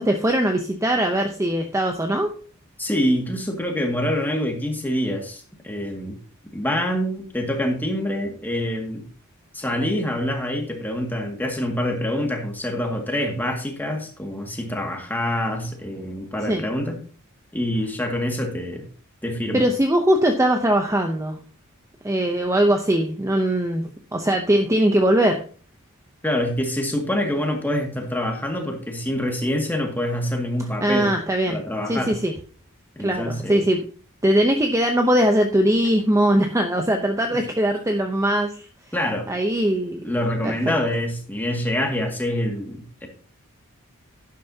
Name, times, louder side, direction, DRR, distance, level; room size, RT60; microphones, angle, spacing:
voice 1, 0.0-2.3 16.5-16.6 19.5-21.4 22.0-23.8 24.1-25.4 30.8-32.3 33.0-33.8 34.2-38.6 39.3-40.0 40.4-40.8, right 1 dB, 15° right, 4 dB, 0.7 m, -21 dB
voice 2, 2.8-6.2 6.5-9.0 9.5-17.0 17.5-18.9 19.2-19.7 26.2-31.1 31.5-32.2 33.0-33.6 37.3-37.4 38.9-39.3 40.0-43.1, left 1 dB, 10° left, 1 dB, 2.1 m, -26 dB
11.5 x 11.0 x 2.8 m, 0.41 s
head